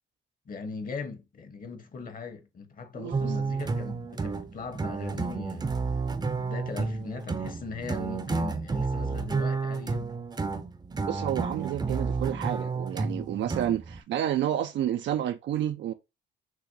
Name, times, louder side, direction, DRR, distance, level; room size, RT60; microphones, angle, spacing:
voice 1, 0.5-5.8 6.4-10.1, left 4 dB, 45° left, 1.2 m, -39 dB
sound 1, 3.1-14.0, right 4 dB, 20° right, 0.6 m, -31 dB
voice 2, 11.1-15.9, right 11 dB, 65° right, 0.5 m, -30 dB
6.0 x 3.0 x 2.7 m
cardioid pair, 90°, 20 cm